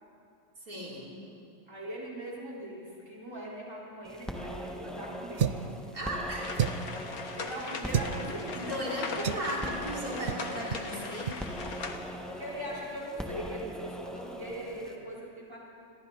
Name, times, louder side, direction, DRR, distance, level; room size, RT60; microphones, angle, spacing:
voice 1, 0.6-1.2 5.9-6.6 8.5-11.4, equal, 85° right, -4 dB, 4.3 m, -36 dB
voice 2, 1.7-5.6 7.4-8.6 12.3-15.6, right 1 dB, 20° right, -6 dB, 4.5 m, -40 dB
sound 1, 4.0-14.9, equal, ahead, 1.6 m, -41 dB
sound 2, 5.4-5.7 6.5-7.0 7.9-8.2 9.2-9.5 10.3-10.4 10.7-10.9 11.2-11.4, right 8 dB, 55° right, 0.8 m, -30 dB
sound 3, 6.4-12.0, left 4 dB, 90° left, 1.9 m, -40 dB
29.5 x 22.5 x 4.2 m, 2.5 s
omnidirectional pair, 1.5 m